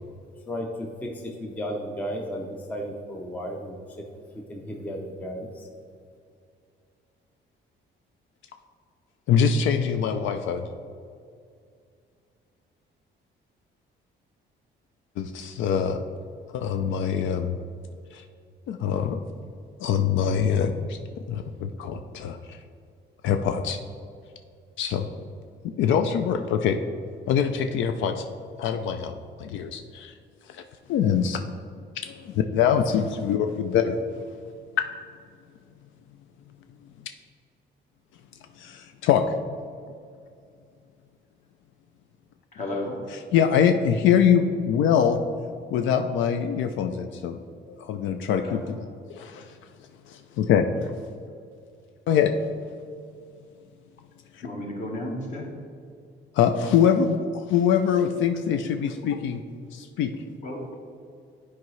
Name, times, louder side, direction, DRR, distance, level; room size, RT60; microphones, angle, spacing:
voice 1, 0.5-3.8 4.3-5.6, equal, 10° left, 1 dB, 0.5 m, -34 dB
voice 2, 9.3-10.6 15.2-16.0 16.5-17.6 18.1-18.2 18.7-19.2 19.8-21.0 21.3-22.6 23.2-23.8 24.8-25.1 25.6-26.8 27.3-28.3 28.6-30.1 30.5-30.6 30.9-31.4 32.0-34.0 34.8-34.9 38.6-39.2 43.3-45.2 45.7-47.4 47.7-49.6 50.1-50.9 52.1-52.4 54.3-54.5 56.3-59.4 59.7-60.1, left 8 dB, 75° left, 7 dB, 0.4 m, -24 dB
voice 3, 42.5-43.0 48.4-48.6 54.4-55.5 58.9-59.0 60.4-60.6, left 1 dB, 40° left, 0 dB, 1.3 m, -33 dB
11.0 x 4.8 x 3.1 m, 2.3 s
cardioid pair, 175°, 20 cm